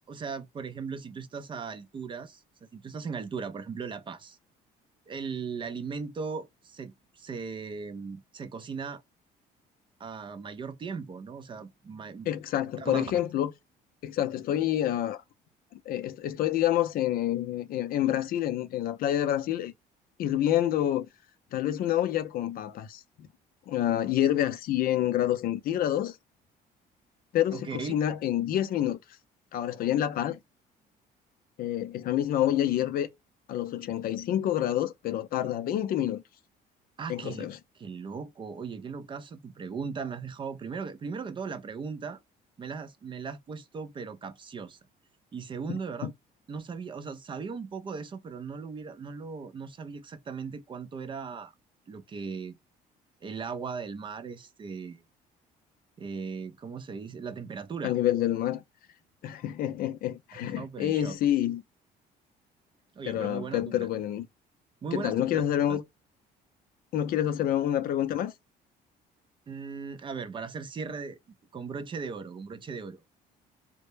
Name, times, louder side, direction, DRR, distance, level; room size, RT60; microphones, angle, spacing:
voice 1, 0.1-4.4 5.1-9.0 10.0-12.3 12.8-13.0 27.5-27.9 37.0-37.5 37.8-42.2 42.6-44.8 45.3-46.1 46.5-51.5 51.9-52.6 53.2-55.0 56.0-58.0 60.3-61.2 63.0-63.9 64.8-65.4 65.7-65.8 69.5-71.2 71.5-73.0, right 5 dB, 30° right, 0.4 m, -38 dB
voice 2, 12.3-13.5 14.0-15.2 15.9-19.7 20.2-21.1 21.5-23.3 23.7-26.2 27.3-29.0 29.5-30.4 31.6-33.1 33.5-36.2 37.1-37.6 45.7-46.1 57.8-58.6 59.2-61.6 63.1-64.3 64.9-65.8 66.9-68.3, left 12 dB, 60° left, 0.4 m, -28 dB
2.1 x 2.0 x 3.1 m
cardioid pair, 110°, 17 cm